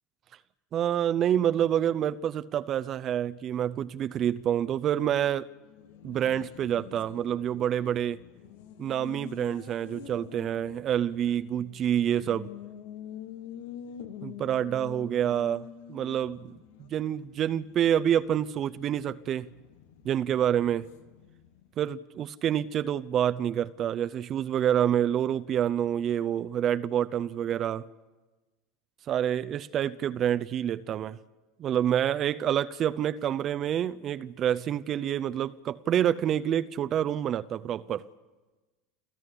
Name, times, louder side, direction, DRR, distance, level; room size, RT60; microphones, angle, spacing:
voice 1, 0.7-5.5 6.0-8.2 8.8-12.5 14.2-16.6 16.9-19.5 20.0-20.9 21.8-27.9 29.1-31.2 31.6-38.0, right 10 dB, 45° right, 0.7 m, -27 dB
Race car auto racing, 5.5-21.8, left 9 dB, 70° left, 1.4 m, -47 dB
29.5 x 13.5 x 8.5 m
hypercardioid pair, 75°, 0 cm